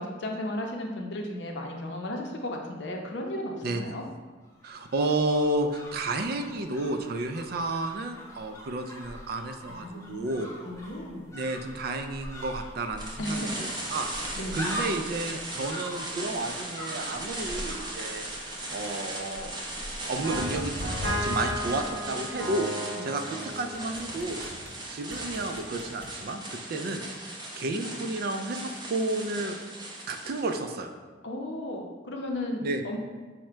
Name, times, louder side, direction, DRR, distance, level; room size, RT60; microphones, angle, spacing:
voice 1, 0.0-4.0 9.7-11.2 13.2-13.7 14.4-14.6 23.0-23.1 31.2-33.0, left 1 dB, 65° left, 1 dB, 0.6 m, -35 dB
sound 1, 4.4-22.6 22.9-23.0, equal, 15° left, 0.6 m, -43 dB
voice 2, 4.6-10.5 11.3-14.1 14.5-18.3 18.7-19.6 20.1-20.7 21.1-22.7 23.0-24.5 24.9-27.3 27.5-29.6 30.1-30.9 32.6-32.8, right 2 dB, 55° right, 7 dB, 0.3 m, -31 dB
sound 2, 13.0-30.7, right 1 dB, 25° right, 0.7 m, -38 dB
sound 3, 20.2-24.7 25.1-26.1, equal, 75° right, 0.7 m, -34 dB
4.8 x 2.1 x 4.3 m, 1.4 s
head